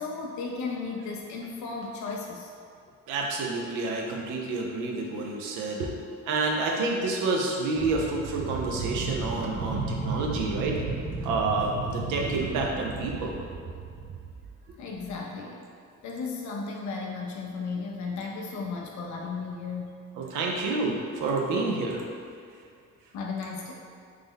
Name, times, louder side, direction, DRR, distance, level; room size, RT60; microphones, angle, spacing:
voice 1, 0.0-2.5 14.8-15.7 16.0-20.0 23.1-23.7, left 4 dB, 70° left, 0 dB, 0.5 m, -35 dB
voice 2, 3.1-5.9 6.3-10.8 11.2-13.4 20.2-22.0, right 3 dB, 85° right, 0 dB, 0.5 m, -29 dB
sound 1, 7.8-14.5 15.0-15.1, right 4 dB, 40° right, 0.5 m, -34 dB
3.2 x 2.1 x 3.5 m, 2.3 s
cardioid pair, 90°, 30 cm